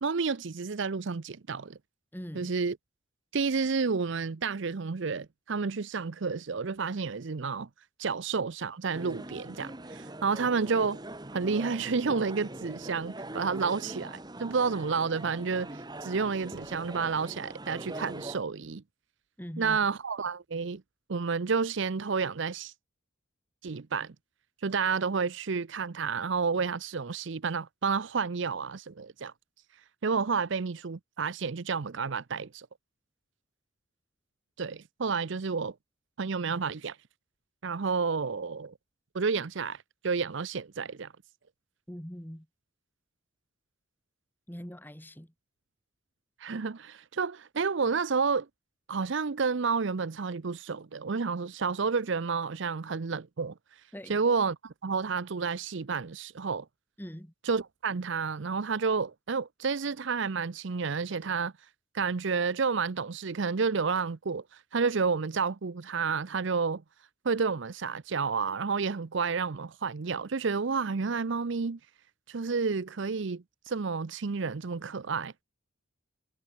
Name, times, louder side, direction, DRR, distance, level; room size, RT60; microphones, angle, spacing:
voice 1, 0.0-1.8 2.3-2.8 3.3-7.7 8.0-11.0 11.3-18.8 19.6-20.8 21.1-22.7 23.6-24.1 24.6-29.3 30.0-32.7 34.6-35.7 36.2-37.0 37.6-38.7 39.1-41.1 46.4-48.5 48.9-53.5 54.1-56.7 57.4-61.5 61.9-66.8 67.2-71.8 72.3-75.4, right 5 dB, 60° right, 0.6 m, -30 dB
voice 2, 2.1-2.5 19.4-19.8 41.9-42.5 44.5-45.3 53.9-54.2 57.0-57.3, equal, 10° left, 2.3 m, -42 dB
sound 1, 8.9-18.4, right 1 dB, 20° right, 1.4 m, -42 dB
head